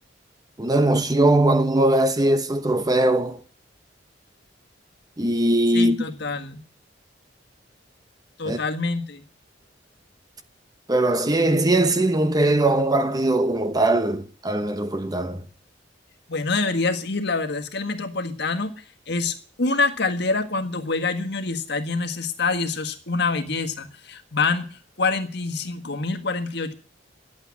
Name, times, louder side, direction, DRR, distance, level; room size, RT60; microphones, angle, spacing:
voice 1, 0.6-3.4 5.2-6.0 8.4-8.6 10.9-15.4, right 1 dB, 20° right, 1.1 m, -20 dB
voice 2, 5.7-6.6 8.4-9.2 16.3-18.7 19.1-24.7 25.0-26.7, left 3 dB, 65° left, 1.7 m, -26 dB
11.5 x 8.5 x 9.6 m
head